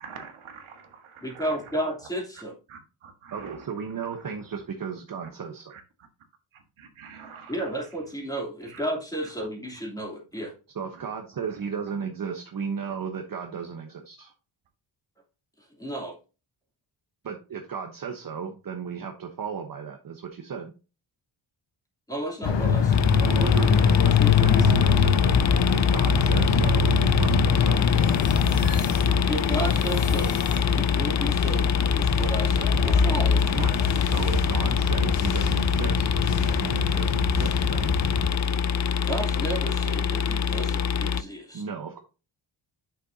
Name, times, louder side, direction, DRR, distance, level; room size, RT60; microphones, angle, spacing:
voice 1, 0.0-1.6 2.7-3.6 5.7-5.8 6.8-7.6 8.7-8.8 9.4-9.5 10.4-10.5, right 6 dB, 80° right, 1.6 m, -45 dB
voice 2, 1.2-2.5 7.5-10.5 15.8-16.1 22.1-23.2 24.2-24.8 29.3-30.4 30.7-33.7 39.0-41.6, right 1 dB, 5° left, 2.9 m, -32 dB
voice 3, 3.3-5.8 10.7-14.3 17.2-20.7 23.2-25.3 25.7-27.9 33.5-37.9 41.5-42.0, right 6 dB, 45° right, 1.0 m, -35 dB
sound 1, 22.4-38.3, left 6 dB, 60° left, 1.2 m, -24 dB
sound 2, 22.9-41.2, left 7 dB, 40° left, 0.4 m, -25 dB
sound 3, 27.7-31.1, left 5 dB, 85° left, 2.4 m, -43 dB
8.4 x 6.4 x 2.7 m
wide cardioid pair, 130°, 48 cm